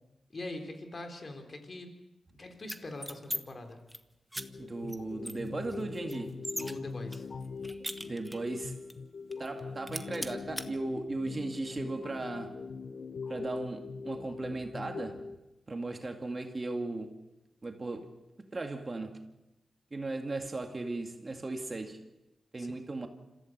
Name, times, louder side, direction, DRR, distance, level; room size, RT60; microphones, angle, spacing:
voice 1, 0.3-1.9 2.4-3.8 6.5-7.3 22.6-22.7, left 2 dB, 45° left, 3.8 m, -42 dB
sound 1, 2.6-3.4 3.7-4.0 4.3-4.4 4.9-5.0 5.2-6.7 7.1-8.5 8.9-9.0 9.3-9.6 9.9-10.7, equal, 5° right, 1.3 m, -39 dB
sound 2, 4.4-15.4, left 4 dB, 65° left, 0.8 m, -42 dB
voice 2, 4.6-6.4 8.0-8.8 9.4-12.6 13.3-15.3 15.7-17.2 17.6-18.1 18.5-19.2 19.9-22.0 22.5-23.1, right 2 dB, 35° right, 2.2 m, -37 dB
26.5 x 15.0 x 6.7 m
cardioid pair, 60°, 0 cm